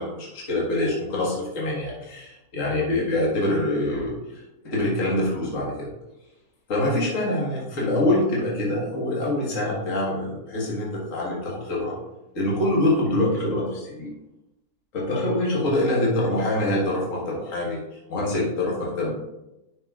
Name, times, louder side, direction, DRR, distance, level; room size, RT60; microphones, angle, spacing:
voice 1, 0.0-5.9 6.7-12.0 12.3-14.1 14.9-19.2, left 1 dB, 55° left, -5 dB, 1.9 m, -25 dB
9.8 x 6.1 x 2.4 m, 0.96 s
omnidirectional pair, 1.6 m